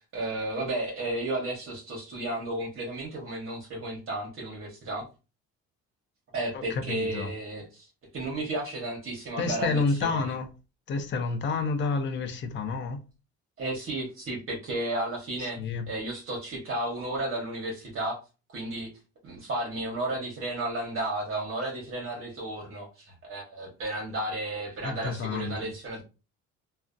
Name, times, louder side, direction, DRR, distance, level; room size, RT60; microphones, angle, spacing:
voice 1, 0.1-5.1 6.3-10.3 13.6-15.6 15.9-18.2 18.5-18.9 19.2-26.0, right 1 dB, 45° right, 0.9 m, -33 dB
voice 2, 6.5-7.3 9.4-10.5 10.9-13.0 15.4-15.9 24.8-25.7, left 4 dB, 40° left, 0.5 m, -29 dB
2.5 x 2.1 x 2.4 m
cardioid pair, 105°, 29 cm